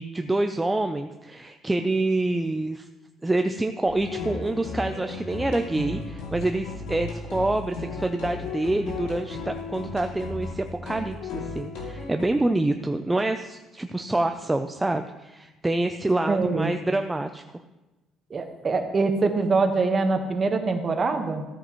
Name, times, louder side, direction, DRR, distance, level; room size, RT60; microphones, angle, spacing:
voice 1, 0.0-2.9 3.2-17.4, right 2 dB, 10° right, 7 dB, 0.4 m, -26 dB
sound 1, 3.9-12.2, left 3 dB, 90° left, 2.5 m, -35 dB
voice 2, 16.3-16.7 18.3-21.5, right 3 dB, 30° right, 5 dB, 1.2 m, -24 dB
14.0 x 9.0 x 3.1 m, 1.1 s
cardioid pair, 120°, 0 cm